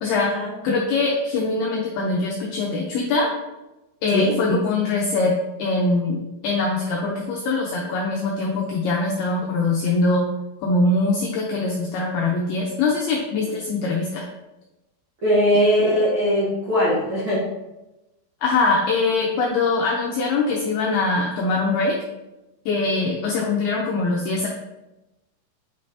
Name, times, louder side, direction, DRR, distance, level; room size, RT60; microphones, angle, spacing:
voice 1, 0.6-3.3 4.0-5.3 5.6-6.2 6.4-10.3 10.6-14.3 18.4-22.0 22.7-24.5, left 3 dB, 85° left, -2 dB, 2.2 m, -22 dB
voice 2, 15.2-17.4, equal, 80° right, -8 dB, 1.1 m, -20 dB
8.5 x 5.4 x 2.8 m, 0.98 s
omnidirectional pair, 5.4 m